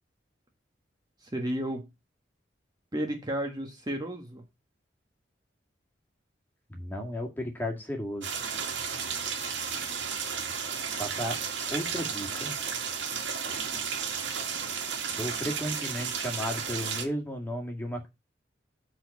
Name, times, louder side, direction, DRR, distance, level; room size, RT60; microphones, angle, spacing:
voice 1, 1.2-1.9 2.9-4.4, right 1 dB, 20° right, 1.4 m, -32 dB
voice 2, 6.7-8.3 11.0-11.4 11.7-12.5 15.2-18.1, equal, 10° left, 2.1 m, -34 dB
sound 1, 8.2-17.1, right 6 dB, 80° right, 2.0 m, -33 dB
8.0 x 4.1 x 6.5 m
head